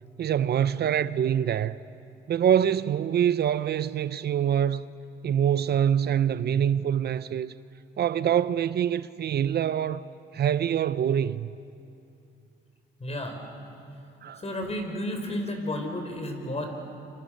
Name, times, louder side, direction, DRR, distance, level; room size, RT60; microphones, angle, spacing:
voice 1, 0.2-1.8 2.3-4.9 5.2-7.5 8.0-10.0 10.3-11.5 14.2-14.4, right 9 dB, 55° right, 0.6 m, -25 dB
voice 2, 13.0-13.4 14.3-16.7, left 1 dB, 30° left, 5.1 m, -32 dB
29.5 x 25.0 x 6.6 m
cardioid pair, 90°, 20 cm